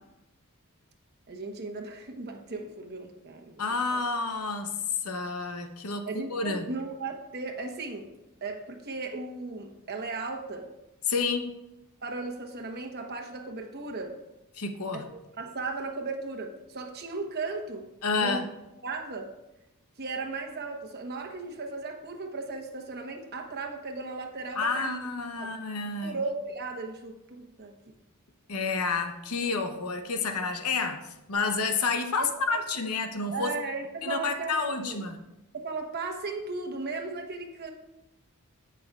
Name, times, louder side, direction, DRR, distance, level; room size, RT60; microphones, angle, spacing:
voice 1, 1.3-3.6 3.9-4.0 6.1-8.1 8.4-10.7 12.0-14.2 14.9-15.0 15.4-18.5 18.8-19.3 20.0-25.1 25.4-25.5 26.0-27.7 32.2-32.6 33.3-35.0 35.5-37.7, right 3 dB, 50° right, 3 dB, 1.0 m, -36 dB
voice 2, 3.6-6.7 11.1-11.5 14.6-15.1 18.0-18.5 24.6-26.2 28.5-33.5 34.0-35.2, left 4 dB, 80° left, 6 dB, 0.9 m, -30 dB
15.0 x 6.0 x 2.4 m, 0.94 s
head